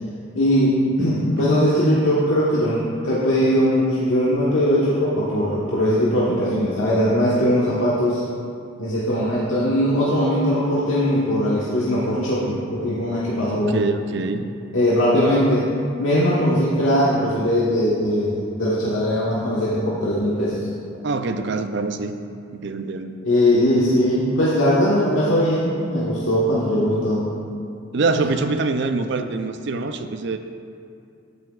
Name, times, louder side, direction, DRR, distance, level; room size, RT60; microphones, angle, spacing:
voice 1, 0.3-8.2 8.8-13.8 14.7-15.7 16.0-20.7 23.2-27.3, equal, 85° left, -8 dB, 1.4 m, -20 dB
voice 2, 13.5-14.5 21.0-22.1 22.5-23.2 27.9-30.4, right 3 dB, 60° right, 8 dB, 0.5 m, -24 dB
14.0 x 9.1 x 2.4 m, 2.4 s
head